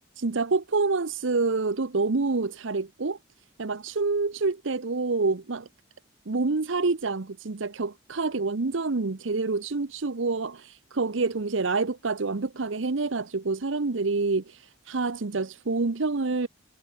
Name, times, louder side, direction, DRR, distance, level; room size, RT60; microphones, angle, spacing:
voice 1, 0.2-3.2 3.6-5.7 6.3-16.5, right 3 dB, 80° right, 0.9 m, -27 dB
head